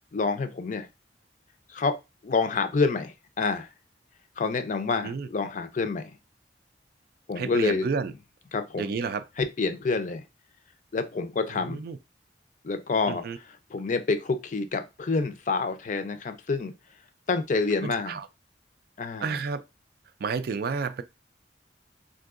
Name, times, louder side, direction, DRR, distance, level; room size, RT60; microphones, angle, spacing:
voice 1, 0.1-0.9 1.7-2.0 2.2-3.7 4.4-6.1 7.3-7.9 8.5-8.9 9.4-10.2 10.9-11.8 12.6-13.2 13.7-16.7 17.3-18.2 19.0-19.3, left 4 dB, 45° left, 0.4 m, -27 dB
voice 2, 7.4-8.1 8.8-9.2 11.5-12.0 13.1-13.4 17.8-18.3 19.2-19.6 20.2-21.0, right 5 dB, 60° right, 0.3 m, -31 dB
3.7 x 2.6 x 2.4 m
head